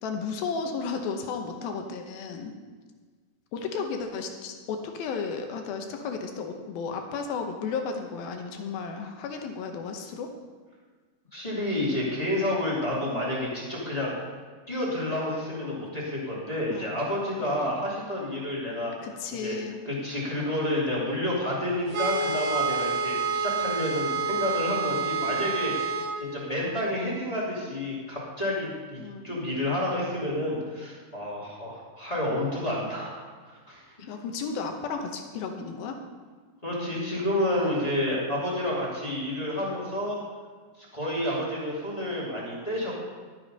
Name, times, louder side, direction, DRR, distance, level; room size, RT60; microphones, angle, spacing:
voice 1, 0.0-2.5 3.5-10.3 16.7-16.9 17.4-17.7 19.0-19.8 29.0-29.4 34.0-36.0, left 5 dB, 75° left, 4 dB, 2.5 m, -33 dB
voice 2, 11.3-14.1 14.7-18.9 19.4-19.6 19.9-25.7 26.2-33.1 33.4-33.8 36.6-40.2 40.8-43.1, left 1 dB, 15° left, -7 dB, 1.8 m, -29 dB
sound 1, 21.9-26.1, right 4 dB, 60° right, 2.4 m, -28 dB
12.0 x 8.0 x 5.4 m, 1.5 s
omnidirectional pair, 4.7 m